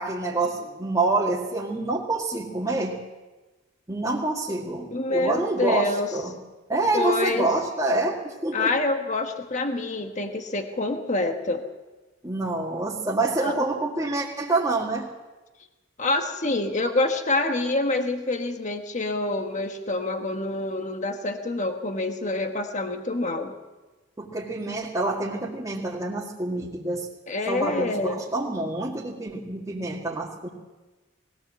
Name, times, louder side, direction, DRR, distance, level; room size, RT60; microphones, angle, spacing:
voice 1, 0.0-3.0 3.9-6.4 6.7-8.7 12.2-15.1 24.2-27.1 27.5-30.5, right 2 dB, 20° right, -5 dB, 2.1 m, -27 dB
voice 2, 4.9-6.1 6.9-7.5 8.5-11.6 13.4-13.6 16.0-23.6 27.3-28.2, left 2 dB, 40° left, 5 dB, 1.3 m, -27 dB
20.5 x 17.0 x 7.5 m, 1.2 s
head